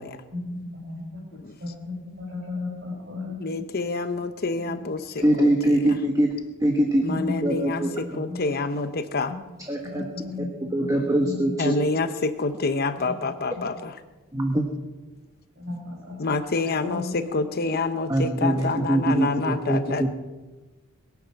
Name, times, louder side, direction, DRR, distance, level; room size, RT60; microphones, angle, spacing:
voice 1, 0.3-1.2 1.6-3.6 7.0-7.5 7.7-7.9 8.3-8.4 9.8-11.7 15.6-16.6 16.8-17.4 18.4-18.6, left 3 dB, 50° right, -4 dB, 4.3 m, -35 dB
voice 2, 3.4-6.0 7.0-9.3 11.6-14.0 16.2-20.1, left 3 dB, 45° left, 10 dB, 0.8 m, -28 dB
voice 3, 5.2-6.3 6.6-7.0 7.4-7.9 9.7-10.0 10.7-11.7 14.3-14.7 18.1-20.1, right 1 dB, 15° right, 2 dB, 1.3 m, -22 dB
22.5 x 9.6 x 5.9 m, 1.2 s
head